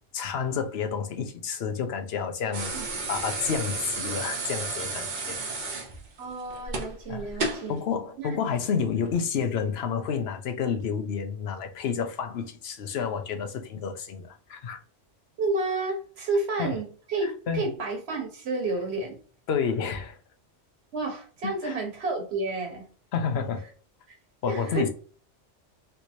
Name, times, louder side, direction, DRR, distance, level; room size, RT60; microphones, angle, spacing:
voice 1, 0.1-2.7 3.1-5.4 7.1-7.3 7.7-14.8 16.6-16.8 17.2-17.7 19.5-20.2 21.4-21.7 23.1-23.6 24.4-24.9, left 6 dB, 65° left, 0.9 m, -30 dB
sound 1, 2.5-7.7 9.1-9.2, right 3 dB, 45° right, 0.8 m, -32 dB
voice 2, 6.2-7.8 8.2-8.4 15.4-19.2 20.9-22.9 24.5-24.9, right 2 dB, 65° right, 1.3 m, -30 dB
3.3 x 3.0 x 2.6 m
omnidirectional pair, 1.2 m